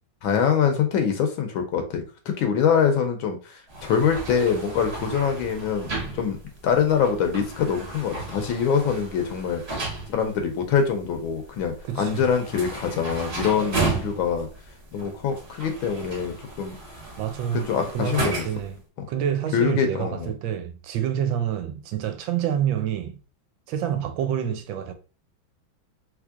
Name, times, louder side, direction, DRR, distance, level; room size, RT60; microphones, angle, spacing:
voice 1, 0.2-2.0 2.4-6.4 6.6-9.8 10.1-14.5 14.9-16.8 17.5-18.4 19.5-20.3, left 7 dB, 80° left, 1.4 m, -24 dB
sound 1, 3.7-18.8, right 3 dB, 40° right, 1.1 m, -34 dB
voice 2, 11.9-12.3 17.2-17.6 17.9-18.8 19.1-23.2 23.7-24.9, right 9 dB, 80° right, 1.3 m, -27 dB
3.5 x 3.3 x 2.4 m
omnidirectional pair, 2.2 m